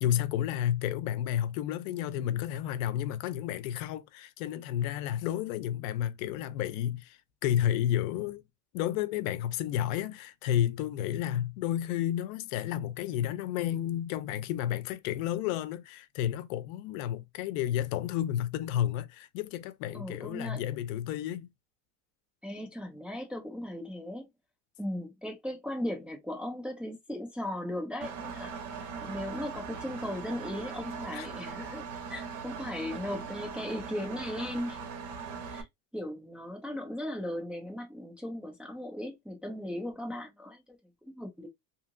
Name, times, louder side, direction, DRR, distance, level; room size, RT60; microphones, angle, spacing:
voice 1, 0.0-8.4 8.7-21.5 31.1-31.3, left 11 dB, 85° left, 0.6 m, -31 dB
voice 2, 19.9-20.7 22.4-24.3 24.8-28.5 29.0-34.9 35.5-35.7 35.9-40.8 41.0-41.5, left 1 dB, 5° right, 0.3 m, -37 dB
Engine, 28.0-35.6, right 5 dB, 80° right, 1.0 m, -40 dB
2.8 x 2.8 x 2.4 m
cardioid pair, 155°, 40 cm